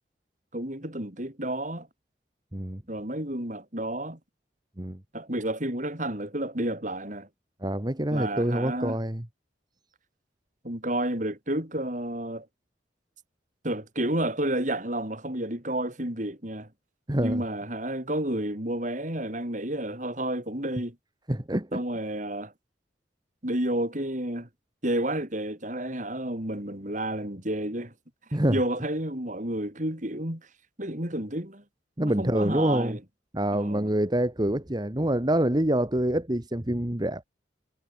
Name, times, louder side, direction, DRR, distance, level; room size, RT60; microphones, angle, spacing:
voice 1, 0.5-1.9 2.9-4.2 5.1-7.3 8.1-9.0 10.6-12.5 13.6-16.7 17.2-20.9 21.7-22.5 23.4-24.5 24.8-27.9 28.5-30.5 30.8-31.6 32.0-33.0 33.5-33.9, right 1 dB, 40° right, 5.0 m, -31 dB
voice 2, 2.5-2.8 4.8-5.0 7.6-9.2 17.1-17.4 21.3-21.8 28.3-28.6 32.0-33.0 33.3-37.3, right 1 dB, 25° right, 1.5 m, -26 dB
head